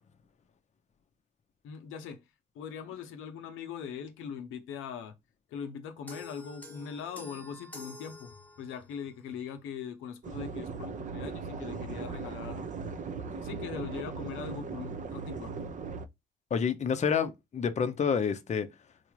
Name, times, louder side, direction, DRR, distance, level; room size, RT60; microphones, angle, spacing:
voice 1, 1.6-2.2 2.5-5.1 5.5-12.6 13.3-15.5, left 7 dB, 90° left, 0.6 m, -41 dB
sound 1, 6.1-8.9, left 2 dB, 10° left, 1.0 m, -48 dB
sound 2, 10.2-16.1, right 4 dB, 40° right, 0.5 m, -38 dB
voice 2, 16.5-18.7, left 6 dB, 35° left, 0.6 m, -28 dB
4.0 x 2.4 x 3.1 m
cardioid pair, 90°, 20 cm